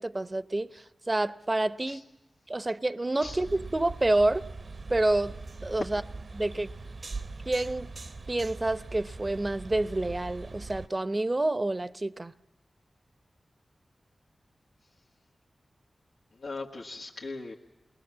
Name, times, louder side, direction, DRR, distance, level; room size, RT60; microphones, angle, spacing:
voice 1, 0.0-2.0 2.5-4.4 4.9-5.4 5.6-6.0 6.3-6.7 7.4-7.9 8.3-12.3, right 2 dB, 30° right, 0.7 m, -28 dB
sound 1, 3.2-10.9, right 3 dB, 60° right, 0.9 m, -41 dB
voice 2, 16.3-17.5, left 3 dB, 90° left, 1.5 m, -39 dB
28.5 x 20.5 x 7.3 m
cardioid pair, 55°, 0 cm